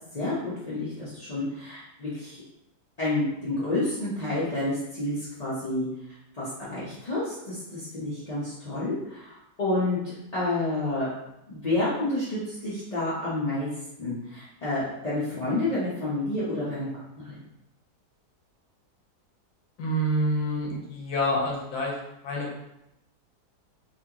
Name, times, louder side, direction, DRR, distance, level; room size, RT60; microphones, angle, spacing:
voice 1, 0.1-2.4 3.0-5.9 6.4-11.1 11.5-13.7 14.0-17.4, left 2 dB, 40° left, -10 dB, 0.6 m, -29 dB
voice 2, 19.8-21.9 22.2-22.7, equal, 70° left, -2 dB, 1.3 m, -27 dB
4.2 x 2.6 x 2.8 m, 0.85 s
omnidirectional pair, 1.8 m